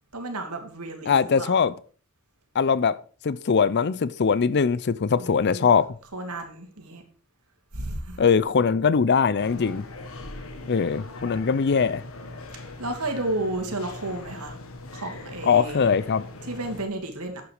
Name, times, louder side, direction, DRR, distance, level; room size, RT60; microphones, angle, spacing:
voice 1, 0.1-1.6 5.2-5.7 6.1-7.0 7.7-8.3 12.8-14.6 14.9-15.9 16.4-17.4, right 2 dB, 90° right, 3.0 m, -32 dB
voice 2, 1.1-1.7 2.5-3.0 3.2-5.9 8.2-9.8 10.7-12.0 15.4-16.2, left 6 dB, 50° left, 0.5 m, -21 dB
sound 1, 9.4-16.8, left 2 dB, 65° left, 1.9 m, -40 dB
11.5 x 8.2 x 4.8 m
head